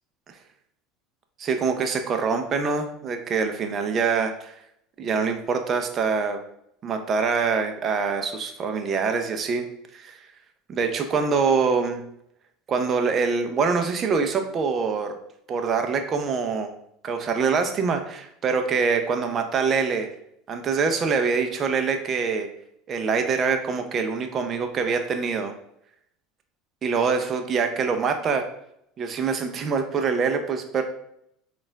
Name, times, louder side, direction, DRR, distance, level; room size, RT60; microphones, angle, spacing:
voice 1, 1.4-4.5 5.0-6.4 6.8-9.7 9.9-10.2 10.7-12.0 12.7-15.1 15.5-16.7 17.0-20.1 20.5-22.5 22.9-25.5 26.8-28.5 29.0-30.8, right 5 dB, 40° right, 6 dB, 0.5 m, -24 dB
4.2 x 2.4 x 3.4 m, 0.74 s
supercardioid pair, 95°, 0 cm